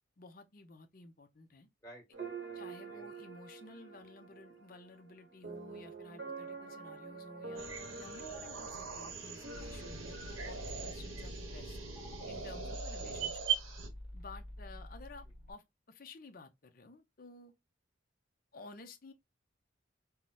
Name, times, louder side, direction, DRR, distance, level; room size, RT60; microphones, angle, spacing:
voice 1, 0.2-1.7 2.5-7.6 8.0-11.8 12.3-13.5 14.1-17.5 18.5-19.1, left 3 dB, 45° left, 0.6 m, -53 dB
voice 2, 1.8-2.6 2.9-3.1, right 1 dB, 15° left, 1.4 m, -55 dB
sound 1, 2.1-13.2, right 4 dB, 55° right, 0.9 m, -48 dB
sound 2, 7.6-13.9, right 7 dB, 85° right, 1.1 m, -40 dB
sound 3, 9.6-15.5, left 1 dB, 5° right, 1.1 m, -48 dB
5.5 x 2.1 x 2.2 m
head